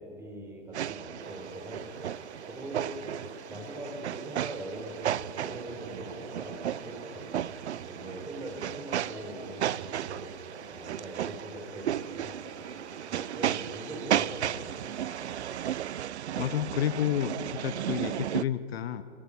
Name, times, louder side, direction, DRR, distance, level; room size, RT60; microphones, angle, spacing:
voice 1, 0.0-1.9 2.5-2.9 3.2-7.5 7.8-10.3 10.7-12.4 13.1-15.0, right 1 dB, 5° right, 0 dB, 4.6 m, -42 dB
sound 1, 0.7-18.4, right 11 dB, 80° right, 0.5 m, -34 dB
sound 2, 1.2-16.0, left 3 dB, 45° left, 5.4 m, -53 dB
voice 2, 16.4-19.0, left 10 dB, 65° left, 13 dB, 1.0 m, -30 dB
27.0 x 14.5 x 8.7 m, 2.8 s
hypercardioid pair, 130°, 33 cm